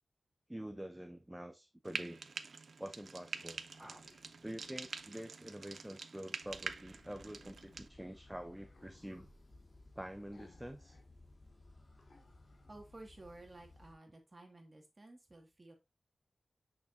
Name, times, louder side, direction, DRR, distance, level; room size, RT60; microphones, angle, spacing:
voice 1, 0.5-2.2 2.8-4.1 4.4-9.3 10.0-11.0, right 1 dB, 10° right, 0.5 m, -47 dB
Frying (food), 1.8-7.9, right 4 dB, 70° right, 0.5 m, -46 dB
sound 1, 3.6-5.4 6.9-7.8 8.6-9.3 10.3-11.1 11.4-11.5 12.0-12.9, left 3 dB, 70° left, 2.0 m, -67 dB
sound 2, 6.4-13.9, left 2 dB, 40° left, 1.8 m, -60 dB
voice 2, 12.7-15.7, right 2 dB, 30° right, 1.9 m, -54 dB
6.5 x 6.0 x 2.6 m
wide cardioid pair, 115°, 0 cm